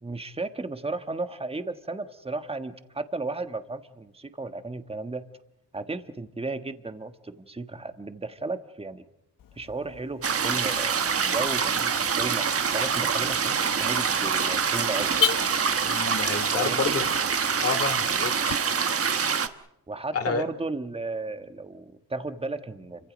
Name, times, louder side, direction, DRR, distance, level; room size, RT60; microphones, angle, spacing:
voice 1, 0.0-5.2 5.7-9.1 9.5-12.4 12.7-13.5 13.8-15.2 16.5-17.0 19.9-23.1, right 3 dB, 15° right, 9 dB, 1.4 m, -34 dB
Car / Alarm, 9.4-18.6, left 9 dB, 55° left, 0.8 m, -37 dB
sound 1, 10.2-19.5, right 6 dB, 35° right, 1.2 m, -25 dB
voice 2, 15.8-17.1 17.6-18.6 20.1-20.4, left 5 dB, 35° left, 10 dB, 2.5 m, -29 dB
30.0 x 25.0 x 5.2 m, 0.83 s
cardioid pair, 130°, 39 cm